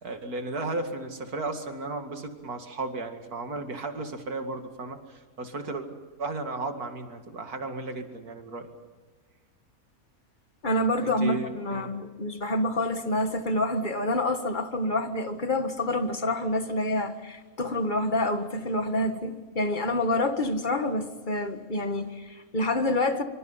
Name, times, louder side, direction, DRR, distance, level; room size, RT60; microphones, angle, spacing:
voice 1, 0.0-5.9 6.2-8.7 11.0-11.9, right 3 dB, 90° right, 2.7 m, -34 dB
voice 2, 10.6-23.2, left 1 dB, 35° left, 1.8 m, -27 dB
26.0 x 25.0 x 5.7 m
omnidirectional pair, 1.6 m